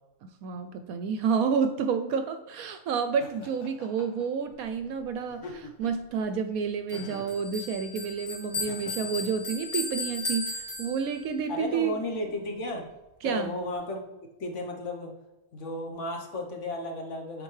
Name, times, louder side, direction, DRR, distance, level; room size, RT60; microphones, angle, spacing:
voice 1, 0.4-12.0 13.2-13.5, right 6 dB, 70° right, 8 dB, 0.9 m, -30 dB
Laughter, 3.2-4.3 5.3-6.0 6.9-7.4 8.5-9.3, left 2 dB, 75° left, 1.5 m, -45 dB
Bell, 6.9-11.4, left 3 dB, 35° left, 2.0 m, -36 dB
voice 2, 11.5-12.8 13.2-14.0 14.4-15.1 15.5-17.4, left 1 dB, 50° left, 2 dB, 1.2 m, -34 dB
8.6 x 4.5 x 3.2 m, 1.0 s
omnidirectional pair, 1.7 m